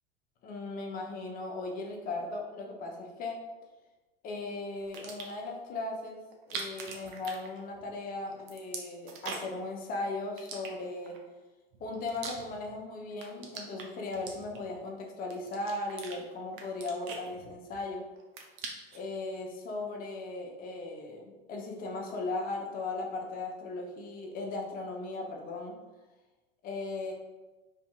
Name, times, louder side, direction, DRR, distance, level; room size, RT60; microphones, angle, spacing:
voice 1, 0.4-3.4 4.2-11.2 11.8-18.0 18.9-25.8 26.6-27.1, left 2 dB, 30° left, 1 dB, 0.5 m, -37 dB
sound 1, 4.8-5.5 6.3-8.0 8.3-9.6 10.4-11.2 11.7-12.8 13.1-14.8 15.3-16.2 16.5-17.9 18.2-19.1, right 5 dB, 55° right, 0.6 m, -42 dB
2.7 x 2.6 x 2.3 m, 1.2 s
hypercardioid pair, 80°, 30 cm